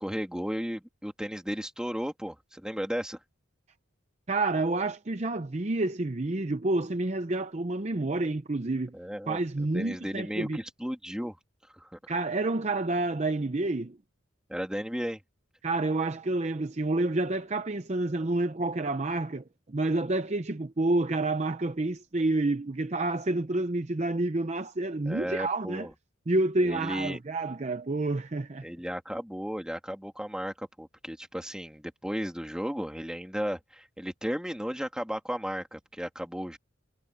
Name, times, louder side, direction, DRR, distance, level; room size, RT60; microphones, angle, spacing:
voice 1, 0.0-3.2 8.9-9.4 9.7-11.4 11.7-12.1 14.5-15.2 25.1-25.9 26.6-27.2 28.6-36.6, equal, 5° right, 2.6 m, -34 dB
voice 2, 4.3-9.0 9.3-10.6 12.1-14.0 15.6-25.9 26.3-28.7, right 2 dB, 35° right, 0.6 m, -29 dB
head